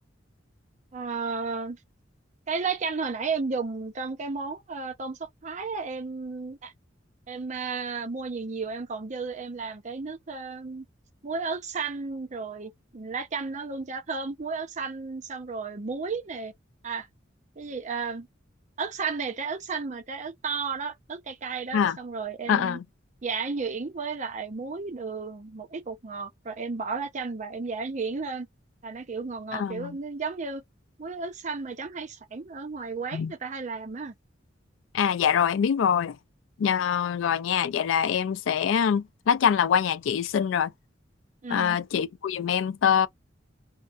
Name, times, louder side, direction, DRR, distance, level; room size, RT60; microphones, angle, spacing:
voice 1, 0.9-1.8 2.5-6.7 7.3-10.9 11.2-16.5 16.8-17.1 17.6-18.3 18.8-22.8 23.2-28.5 28.8-30.6 31.0-34.1 41.4-41.8, right 4 dB, 40° right, 0.5 m, -33 dB
voice 2, 22.5-22.8 29.5-30.0 33.1-33.3 34.9-36.2 36.6-40.7 41.5-43.1, left 8 dB, 75° left, 0.3 m, -24 dB
2.6 x 2.1 x 2.3 m
head